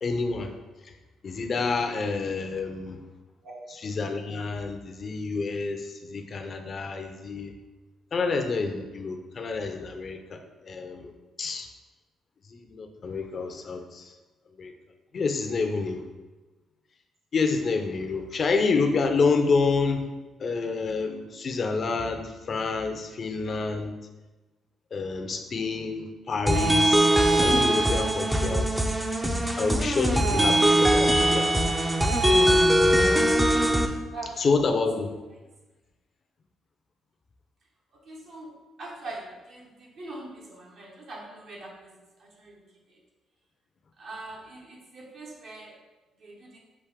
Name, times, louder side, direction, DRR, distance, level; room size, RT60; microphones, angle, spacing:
voice 1, 0.0-0.5 1.2-3.0 3.8-7.5 8.1-10.4 10.6-11.1 11.4-11.7 12.5-14.1 14.6-14.7 15.1-16.0 17.3-20.0 20.4-23.9 24.9-27.1 27.4-28.7 29.6-31.5 34.4-35.1, left 4 dB, 45° left, 5 dB, 0.5 m, -28 dB
sound 1, 26.5-33.9, right 1 dB, 10° right, 0.5 m, -21 dB
voice 2, 37.9-41.9 42.2-42.6 42.9-43.0 44.0-45.8 46.2-46.6, right 2 dB, 65° right, -3 dB, 1.1 m, -42 dB
5.9 x 2.5 x 3.5 m, 1.1 s
cardioid pair, 90°, 0 cm